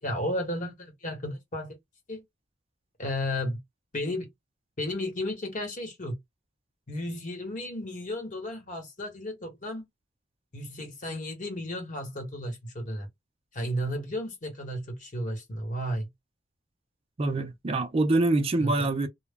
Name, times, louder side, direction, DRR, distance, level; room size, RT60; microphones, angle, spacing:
voice 1, 0.0-1.8 2.1-2.2 3.0-3.6 3.9-4.3 4.8-6.1 6.9-9.9 10.5-13.1 13.5-16.1 18.6-18.9, left 1 dB, 40° left, 1.0 m, -33 dB
voice 2, 17.2-19.1, right 2 dB, 30° right, 0.4 m, -25 dB
2.1 x 2.1 x 3.4 m
head